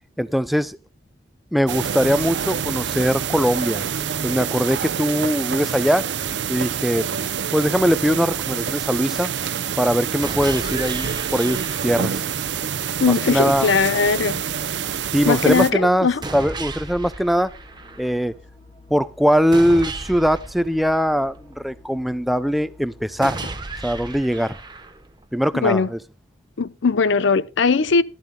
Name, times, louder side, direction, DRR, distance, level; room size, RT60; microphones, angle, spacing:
voice 1, 0.2-0.8 1.5-3.8 4.2-6.0 6.5-7.1 7.5-9.3 9.8-12.2 13.1-13.7 15.1-17.5 18.0-18.3 18.9-23.4 23.8-24.6 25.3-26.0, equal, ahead, 0.4 m, -21 dB
sound 1, 1.7-15.7, right 7 dB, 65° right, 0.6 m, -27 dB
sound 2, 10.2-12.2 16.2-18.2 19.5-21.5 23.2-25.2, right 3 dB, 25° right, 1.0 m, -34 dB
voice 2, 13.0-14.4 15.3-16.2 25.6-25.9 26.6-28.0, left 4 dB, 85° left, 0.6 m, -19 dB
sound 3, 13.9-23.5, left 2 dB, 25° left, 2.1 m, -49 dB
14.5 x 12.0 x 2.2 m
head